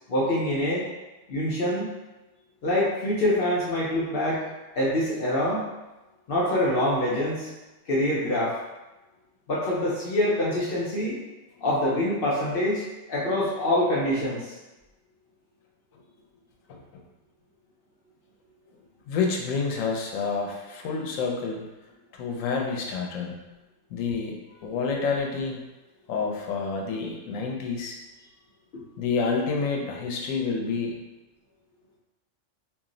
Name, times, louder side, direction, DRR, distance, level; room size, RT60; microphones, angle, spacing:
voice 1, 0.1-0.9 1.3-1.9 2.6-4.4 4.8-5.7 6.3-7.5 7.9-8.6 9.5-11.2 11.6-14.5 28.7-28.8, left 1 dB, 60° left, -6 dB, 0.7 m, -25 dB
voice 2, 19.1-21.6 22.1-23.4 23.9-25.6 26.1-28.0 29.0-31.0, left 4 dB, 85° left, 0 dB, 1.0 m, -28 dB
2.5 x 2.0 x 3.7 m, 1.1 s
omnidirectional pair, 1.3 m